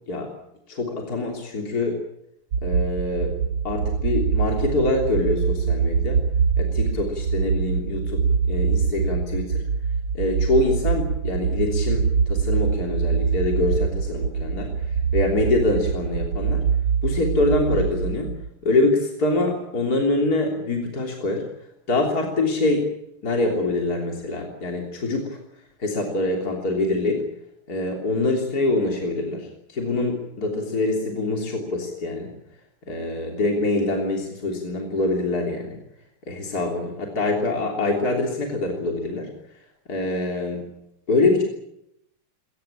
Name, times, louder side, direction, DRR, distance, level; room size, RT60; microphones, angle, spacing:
voice 1, 0.7-2.0 2.6-3.3 3.6-6.2 6.6-9.6 10.1-16.6 17.0-18.3 18.6-21.4 21.9-22.9 23.2-25.4 25.8-27.2 27.7-32.3 32.9-35.8 36.3-39.3 39.9-40.7 41.1-41.4, left 2 dB, 45° left, 1 dB, 3.9 m, -24 dB
sound 1, 2.5-18.5, right 6 dB, 75° right, 1.9 m, -24 dB
22.0 x 20.0 x 8.8 m, 0.80 s
omnidirectional pair, 2.2 m